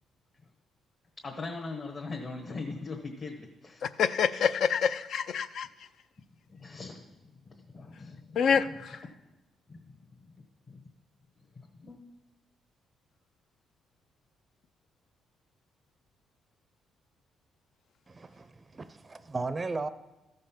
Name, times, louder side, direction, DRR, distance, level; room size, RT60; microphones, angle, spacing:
voice 1, 1.2-3.9 6.5-8.6 9.7-10.0 10.7-10.8 11.5-12.0, left 3 dB, 40° left, 1.2 m, -41 dB
voice 2, 3.8-5.7 8.4-8.9, left 6 dB, 70° left, 0.4 m, -27 dB
voice 3, 18.1-19.9, right 3 dB, 25° right, 0.5 m, -36 dB
13.5 x 5.4 x 5.9 m
cardioid pair, 90°, 0 cm